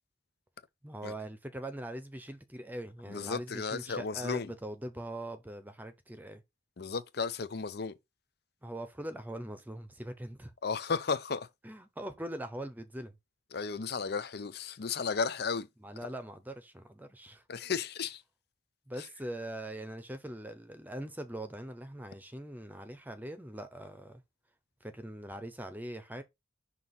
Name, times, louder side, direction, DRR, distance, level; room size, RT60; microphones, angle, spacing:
voice 1, 0.8-6.4 8.6-10.5 11.6-13.1 15.8-17.4 18.9-24.2 24.8-26.2, right 1 dB, 10° right, 0.8 m, -42 dB
voice 2, 3.1-4.5 6.8-7.9 10.6-11.5 13.5-15.7 17.5-18.2, left 5 dB, 60° left, 0.6 m, -34 dB
6.0 x 2.9 x 5.4 m
head